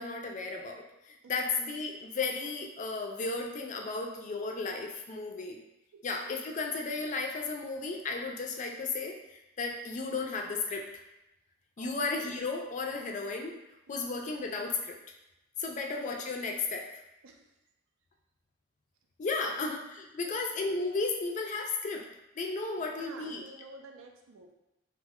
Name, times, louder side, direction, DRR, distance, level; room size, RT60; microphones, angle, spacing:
voice 1, 0.0-5.6 6.0-11.0 11.8-13.6 13.9-15.0 15.6-16.9 19.2-22.1 22.4-23.4, left 3 dB, 40° left, 1 dB, 0.3 m, -34 dB
voice 2, 22.8-24.6, right 3 dB, 85° right, 2 dB, 0.4 m, -50 dB
2.7 x 2.1 x 3.5 m, 0.93 s
head